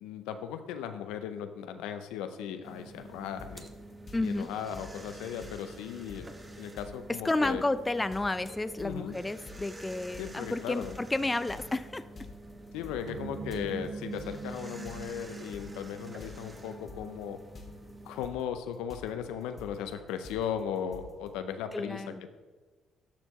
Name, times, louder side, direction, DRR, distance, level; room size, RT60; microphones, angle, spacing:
voice 1, 0.0-3.7 4.2-6.3 6.6-7.6 8.8-9.2 10.2-11.0 12.7-17.4 18.1-22.0, left 8 dB, 85° left, 9 dB, 0.5 m, -37 dB
sound 1, 2.6-18.3, right 1 dB, 20° right, 1.0 m, -48 dB
sound 2, 3.4-3.7 4.1-21.4, left 3 dB, 45° left, 1.4 m, -50 dB
voice 2, 4.1-4.5 7.2-12.0 21.7-22.2, left 2 dB, 20° left, 12 dB, 0.4 m, -31 dB
sound 3, 13.1-17.7, right 5 dB, 50° right, 0.5 m, -43 dB
13.0 x 4.4 x 3.0 m, 1.3 s
supercardioid pair, 60°, 0 cm